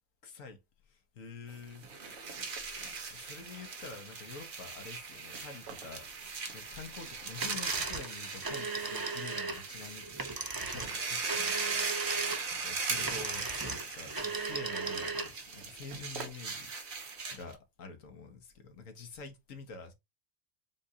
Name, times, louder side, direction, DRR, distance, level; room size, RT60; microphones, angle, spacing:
voice 1, 0.2-1.9 2.5-2.7 3.1-6.1 6.5-19.9, left 4 dB, 75° left, 1.4 m, -48 dB
sound 1, 1.5-16.3, right 5 dB, 60° right, 1.1 m, -54 dB
sound 2, 1.8-17.5, right 4 dB, 85° right, 1.6 m, -39 dB
sound 3, 7.4-15.5, right 4 dB, 35° right, 0.3 m, -37 dB
7.2 x 2.5 x 2.7 m
omnidirectional pair, 1.4 m